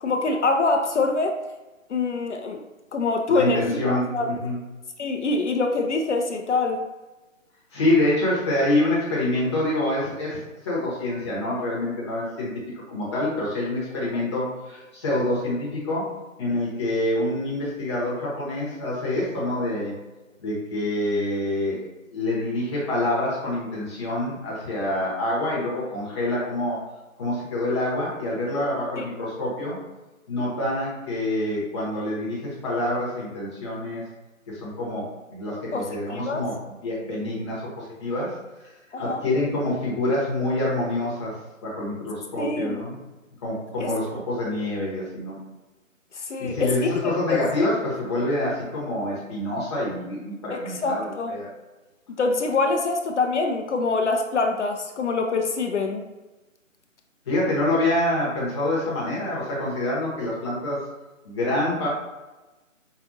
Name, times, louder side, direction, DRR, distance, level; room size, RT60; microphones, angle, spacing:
voice 1, 0.0-1.4 1.9-2.6 2.9-4.3 5.0-6.8 29.0-29.1 35.7-36.4 38.9-39.2 42.4-42.8 43.8-43.9 46.1-47.4 50.5-51.3 52.2-56.0, left 3 dB, 60° left, 4 dB, 0.5 m, -25 dB
voice 2, 3.3-4.6 7.7-12.6 12.9-16.1 16.4-20.0 20.4-21.8 22.1-26.8 27.2-29.8 30.3-34.0 34.5-38.4 38.6-38.7 39.0-43.0 43.4-45.4 46.4-51.5 57.3-60.9 61.2-61.9, left 1 dB, 20° left, -6 dB, 0.9 m, -26 dB
4.8 x 2.4 x 2.6 m, 1.1 s
figure-of-eight pair, 155°, 40 cm